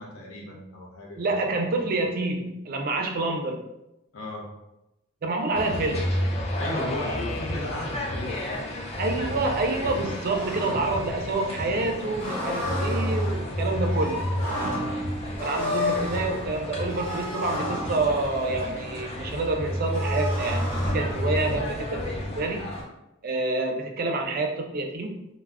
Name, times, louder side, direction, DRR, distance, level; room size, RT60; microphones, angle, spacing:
voice 1, 0.0-1.4 4.1-4.5 6.6-8.7 14.5-15.0, left 1 dB, 80° left, -2 dB, 0.5 m, -36 dB
voice 2, 1.2-3.7 5.2-6.1 9.0-14.2 15.4-22.7 23.2-25.3, right 2 dB, 45° right, 3 dB, 0.4 m, -28 dB
sound 1, 5.5-22.8, left 1 dB, 30° left, 0.4 m, -31 dB
sound 2, 7.7-22.8, left 1 dB, 60° left, 0.9 m, -34 dB
2.3 x 2.0 x 3.4 m, 0.90 s
head